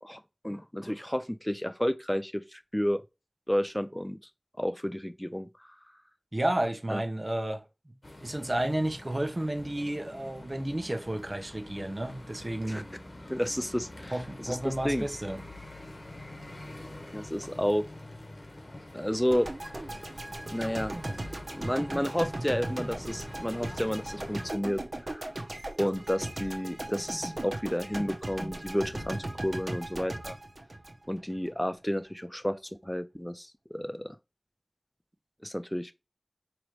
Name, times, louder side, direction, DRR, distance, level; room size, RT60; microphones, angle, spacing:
voice 1, 0.0-3.0 3.5-4.2 4.6-5.7 6.9-7.0 12.7-12.8 13.3-15.1 17.1-17.9 18.9-19.5 20.5-20.9 21.5-25.3 25.8-30.4 31.1-34.2 35.4-35.9, equal, 15° left, 0.3 m, -31 dB
voice 2, 6.3-7.6 8.2-12.8 14.1-15.4, right 1 dB, 50° right, 0.8 m, -31 dB
sound 1, 8.0-24.5, left 1 dB, 70° left, 1.0 m, -46 dB
sound 2, 19.3-31.5, right 1 dB, 90° right, 0.8 m, -38 dB
4.9 x 3.0 x 3.1 m
wide cardioid pair, 40°, 0 cm